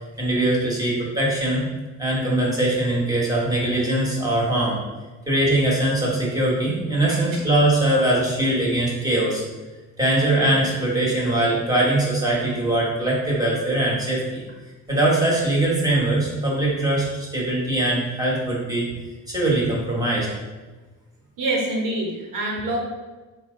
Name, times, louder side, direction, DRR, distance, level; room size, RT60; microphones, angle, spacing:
voice 1, 0.0-1.7 2.0-4.8 5.3-9.4 10.0-14.4 14.9-18.9 19.3-20.3, right 1 dB, 10° right, -4 dB, 1.3 m, -21 dB
voice 2, 7.1-7.4 21.4-22.8, right 2 dB, 70° right, -1 dB, 1.1 m, -26 dB
4.1 x 2.9 x 3.8 m, 1.2 s
cardioid pair, 110°, 34 cm